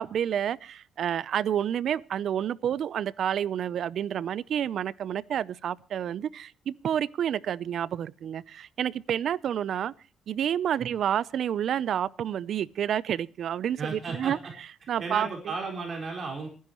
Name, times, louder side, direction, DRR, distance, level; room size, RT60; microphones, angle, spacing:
voice 1, 0.0-9.9 10.3-14.4 14.9-15.3, right 9 dB, 65° right, 0.6 m, -29 dB
voice 2, 13.8-14.5 15.0-16.5, right 4 dB, 50° right, 4.6 m, -34 dB
26.5 x 10.5 x 3.0 m
cardioid pair, 90°, 0 cm